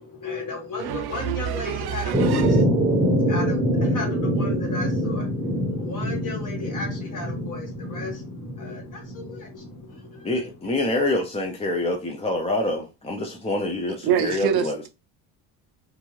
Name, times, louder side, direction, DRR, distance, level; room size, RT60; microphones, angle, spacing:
voice 1, 0.0-10.8, left 3 dB, 45° left, 1.4 m, -36 dB
voice 2, 0.8-2.6 14.0-14.9, right 10 dB, 60° right, 0.5 m, -26 dB
sound 1, 2.1-9.9, equal, 10° right, 0.8 m, -24 dB
voice 3, 10.2-14.7, left 2 dB, 15° left, 0.4 m, -26 dB
2.6 x 2.4 x 3.0 m
cardioid pair, 95°, 44 cm